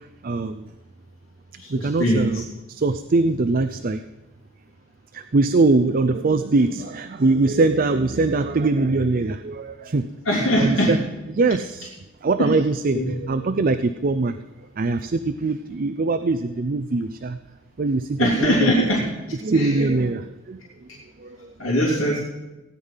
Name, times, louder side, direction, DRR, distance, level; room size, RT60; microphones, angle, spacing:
voice 1, 0.2-0.7 1.7-2.4 2.7-4.0 5.1-10.0 10.6-11.0 11.3-11.9 12.2-14.4 14.8-17.4 17.8-18.7 19.4-20.6 21.2-21.5, right 3 dB, 45° right, 10 dB, 0.5 m, -22 dB
voice 2, 1.6-2.4 10.2-11.0 12.4-12.6 12.9-13.1 18.2-19.1 19.5-19.8 21.6-22.2, equal, 85° left, -4 dB, 3.0 m, -21 dB
17.0 x 9.7 x 5.7 m, 1.0 s
head